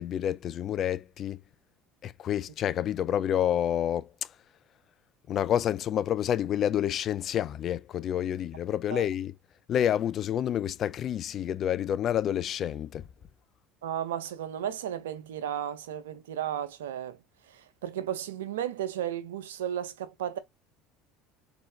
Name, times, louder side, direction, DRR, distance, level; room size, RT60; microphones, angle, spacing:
voice 1, 0.0-1.4 2.0-4.3 5.3-9.3 9.7-13.1, left 10 dB, 50° left, 0.4 m, -29 dB
voice 2, 13.8-17.2 17.5-20.4, right 10 dB, 90° right, 0.7 m, -34 dB
4.2 x 3.9 x 2.8 m
hypercardioid pair, 80°, 0 cm